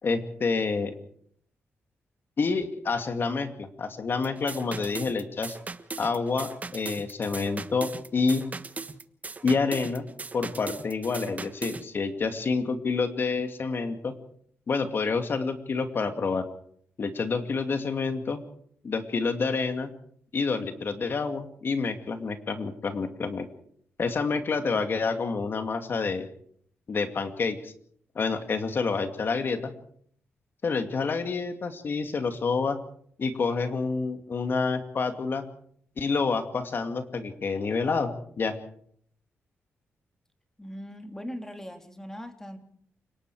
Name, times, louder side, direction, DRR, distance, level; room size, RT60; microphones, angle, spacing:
voice 1, 0.0-0.9 2.4-5.6 6.0-8.5 9.4-10.1 10.3-14.1 14.7-16.4 17.0-18.4 18.8-19.9 20.3-23.5 24.0-26.3 26.9-27.7 28.2-29.7 30.6-32.8 33.2-35.5 36.0-38.6, left 4 dB, 50° left, 7 dB, 2.3 m, -28 dB
sound 1, 4.2-11.9, right 4 dB, 35° right, 1.3 m, -39 dB
voice 2, 40.6-42.6, equal, 10° left, 5 dB, 3.0 m, -40 dB
29.0 x 19.0 x 4.9 m, 0.63 s
cardioid pair, 100°, 5 cm